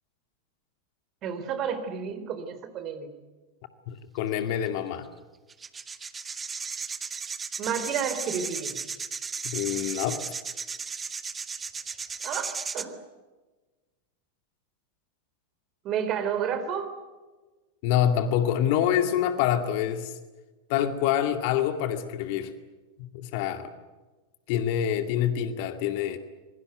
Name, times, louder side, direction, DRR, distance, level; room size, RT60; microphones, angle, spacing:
voice 1, 1.2-3.1 7.6-8.8 12.2-13.0 15.8-16.9, right 7 dB, 35° right, 10 dB, 3.8 m, -31 dB
voice 2, 3.9-5.1 9.4-10.2 17.8-20.1 20.7-22.5 23.0-23.7 24.5-26.2, left 10 dB, 45° left, 8 dB, 2.2 m, -26 dB
sound 1, 4.7-4.8 5.5-12.8, right 5 dB, 15° right, 1.4 m, -35 dB
27.0 x 23.0 x 8.2 m, 1.2 s
figure-of-eight pair, 90°, 0 cm